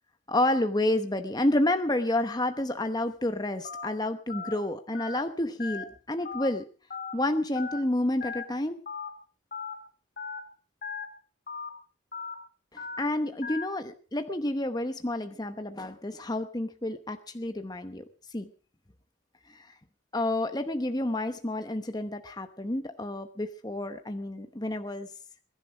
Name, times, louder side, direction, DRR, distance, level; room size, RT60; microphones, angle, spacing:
voice 1, 0.3-6.6 7.1-8.8 12.7-18.0 18.3-18.5 19.5-19.7 20.1-25.1, left 1 dB, 20° left, 8 dB, 0.9 m, -29 dB
Telephone, 3.6-3.9 4.3-4.5 4.9-5.2 5.6-5.8 6.2-6.5 6.9-7.1 7.6-7.8 8.2-8.4 8.9-9.1 9.5-9.7 10.2-10.4 10.8-11.0 11.5-11.7 12.1-12.3 12.8-13.0 13.4-13.6, left 5 dB, 45° left, 3.5 m, -37 dB
22.5 x 10.5 x 5.0 m, 0.38 s
head